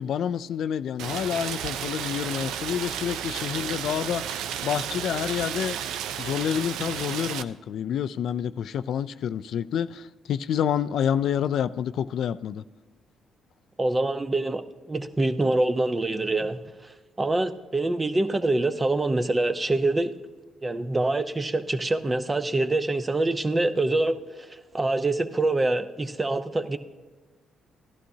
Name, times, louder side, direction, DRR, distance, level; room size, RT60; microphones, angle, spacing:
voice 1, 0.0-5.8 6.2-12.6, left 9 dB, 70° left, 0.3 m, -28 dB
Rain, 1.0-7.4, right 9 dB, 90° right, 0.5 m, -32 dB
voice 2, 13.8-14.6 14.9-16.6 17.2-20.1 20.6-26.8, right 2 dB, 20° right, 0.7 m, -25 dB
15.5 x 11.5 x 2.8 m
cardioid pair, 90°, 0 cm